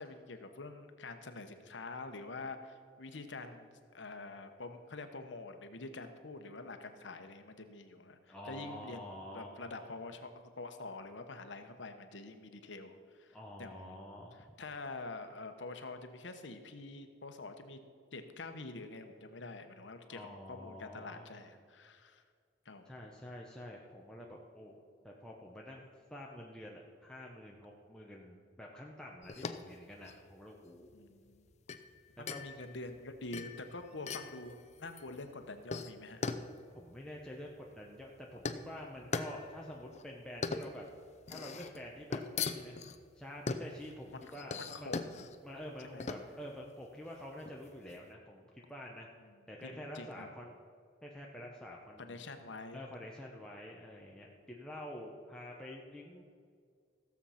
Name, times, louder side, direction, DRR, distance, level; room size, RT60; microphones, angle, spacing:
voice 1, 0.0-9.1 9.3-14.0 14.3-17.8 18.1-22.2 22.6-22.9 30.9-31.5 32.2-36.2 44.1-45.2 45.8-46.1 49.2-49.4 49.6-50.3 52.0-52.8, left 3 dB, 70° left, 7 dB, 1.0 m, -46 dB
voice 2, 8.3-9.9 13.3-14.5 20.0-21.4 22.9-25.8 26.1-31.0 32.3-32.4 36.7-40.9 41.3-42.8 43.1-45.0 45.4-49.1 49.5-50.5 51.0-52.3 52.7-56.2, left 1 dB, 5° left, -2 dB, 0.9 m, -48 dB
sound 1, 29.2-48.0, left 4 dB, 35° left, 0.5 m, -42 dB
15.5 x 7.2 x 5.7 m, 2.1 s
head